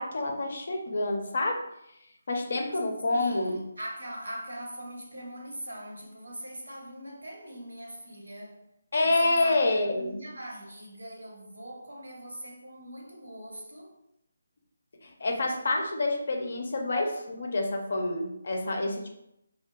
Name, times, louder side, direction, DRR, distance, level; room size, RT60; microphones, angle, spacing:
voice 1, 0.0-1.6 2.3-3.6 8.9-10.2 15.0-19.1, left 2 dB, 55° left, 0.5 m, -28 dB
voice 2, 3.1-8.6 9.0-14.0 17.4-17.5, right 1 dB, 80° right, 0.6 m, -42 dB
2.7 x 2.2 x 2.2 m
figure-of-eight pair, 150°, 0 cm